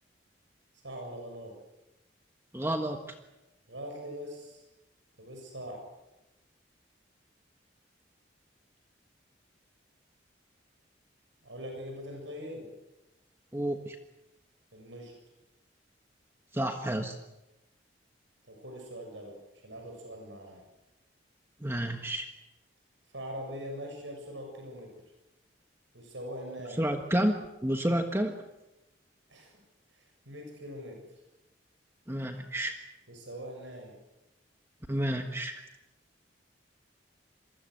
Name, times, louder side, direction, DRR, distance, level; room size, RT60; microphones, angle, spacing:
voice 1, 0.7-1.5 3.7-4.6 5.2-5.8 11.4-12.7 14.7-15.1 18.5-19.4 19.6-20.6 23.1-24.9 25.9-26.9 29.3-29.5 29.9-31.0 33.1-34.0, equal, 80° right, 2 dB, 7.1 m, -42 dB
voice 2, 2.5-3.0 13.5-14.0 16.5-17.1 21.6-22.3 26.8-27.4 27.6-28.3 32.1-32.8 34.9-35.6, right 1 dB, 15° right, 5 dB, 1.4 m, -30 dB
28.0 x 23.0 x 8.0 m, 0.97 s
head